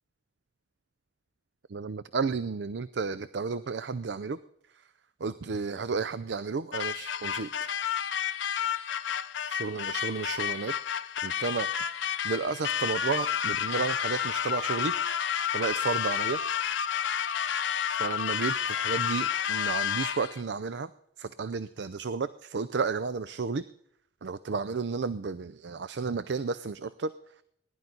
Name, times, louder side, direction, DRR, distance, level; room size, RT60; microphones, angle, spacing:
voice 1, 1.7-4.4 5.2-7.8 9.5-10.7 11.2-11.7 12.0-15.0 15.5-16.4 18.0-20.9 21.2-23.6 24.2-27.1, right 4 dB, 70° right, 13 dB, 0.5 m, -32 dB
sound 1, 6.7-20.4, left 8 dB, 80° left, 0.7 m, -30 dB
19.5 x 11.0 x 4.0 m, 0.71 s
head